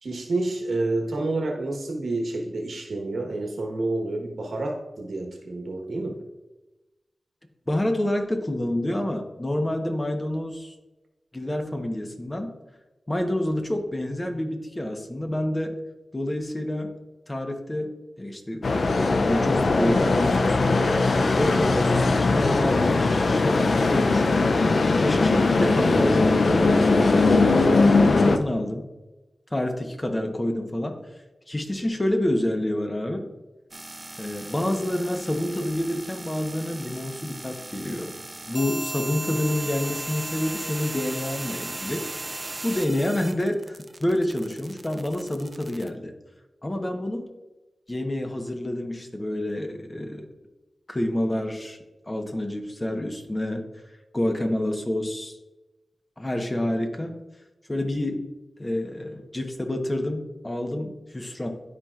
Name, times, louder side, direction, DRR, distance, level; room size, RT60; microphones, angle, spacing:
voice 1, 0.0-6.2, right 2 dB, 80° right, 1 dB, 1.2 m, -29 dB
voice 2, 7.7-10.7 11.3-12.5 13.1-15.8 16.1-16.9 17.3-18.7 19.0-21.0 21.3-24.5 25.0-26.7 27.8-28.9 29.5-31.0 31.5-33.3 34.2-38.1 38.5-42.0 42.6-46.1 46.6-47.3 47.9-50.3 50.9-51.8 52.1-53.7 54.1-55.4 56.2-57.2 57.7-58.2 58.6-61.5, left 1 dB, 25° left, 4 dB, 1.0 m, -28 dB
sound 1, 18.6-28.4, left 3 dB, 70° left, 0.4 m, -20 dB
sound 2, 33.7-45.9, right 2 dB, 30° right, 0.5 m, -37 dB
12.0 x 4.4 x 2.5 m, 1.1 s
wide cardioid pair, 60°, 0 cm